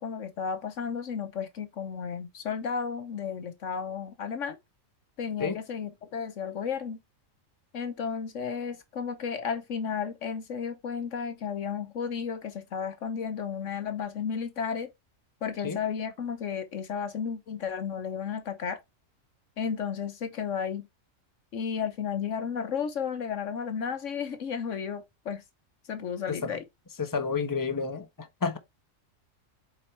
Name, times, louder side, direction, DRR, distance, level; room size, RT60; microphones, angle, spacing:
voice 1, 0.0-4.6 5.2-7.0 7.7-14.9 15.4-18.8 19.6-20.9 21.5-25.4 25.9-26.6, left 6 dB, 65° left, 1.3 m, -33 dB
voice 2, 27.0-28.0 28.4-28.6, left 5 dB, 15° left, 1.0 m, -29 dB
8.1 x 4.2 x 3.2 m
omnidirectional pair, 1.4 m